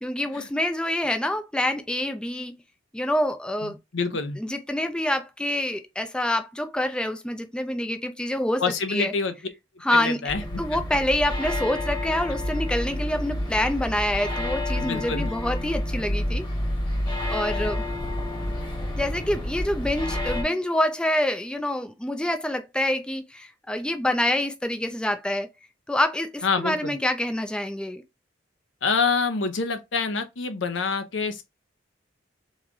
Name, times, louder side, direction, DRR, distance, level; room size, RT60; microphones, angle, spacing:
voice 1, 0.0-2.5 2.9-3.8 4.4-8.6 8.9-9.1 9.8-10.3 10.6-16.5 17.3-17.9 19.0-25.5 25.9-28.0, left 1 dB, 5° left, 0.3 m, -26 dB
voice 2, 3.6-4.4 8.6-9.3 9.9-10.8 14.7-15.3 17.6-17.7 26.4-27.0 28.8-31.4, left 4 dB, 75° left, 0.8 m, -27 dB
sound 1, 10.3-20.4, left 1 dB, 25° left, 1.1 m, -29 dB
3.7 x 3.1 x 3.7 m
head